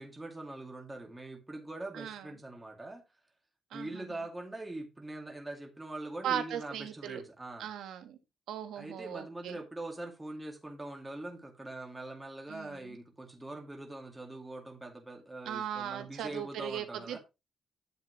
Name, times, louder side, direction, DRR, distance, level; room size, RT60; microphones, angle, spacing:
voice 1, 0.0-3.0 3.7-7.7 8.8-17.2, right 2 dB, 10° right, 2.5 m, -43 dB
voice 2, 1.9-2.3 3.7-4.2 6.2-7.2 7.6-8.2 8.5-9.6 12.5-13.0 15.4-17.2, right 10 dB, 80° right, 1.4 m, -38 dB
9.8 x 7.4 x 3.2 m
cardioid pair, 90°, 0 cm